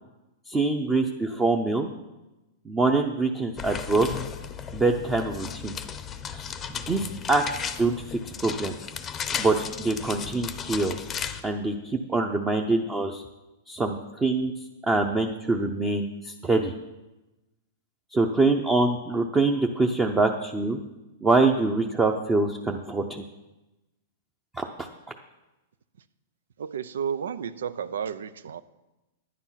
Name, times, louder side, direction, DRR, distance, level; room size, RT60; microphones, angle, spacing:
voice 1, 0.5-1.9 2.7-4.1 4.7-5.7 6.3-6.4 6.7-7.4 7.8-8.7 9.4-11.0 11.4-13.2 13.7-14.5 14.9-16.7 18.1-20.8 21.2-23.2 24.6-24.9, right 3 dB, 15° right, 3 dB, 0.7 m, -24 dB
sound 1, 3.6-11.4, left 7 dB, 20° left, 0.7 m, -35 dB
voice 2, 26.6-28.6, right 7 dB, 90° right, 16 dB, 0.6 m, -32 dB
10.5 x 9.5 x 5.8 m, 1.0 s
hypercardioid pair, 145°, 0 cm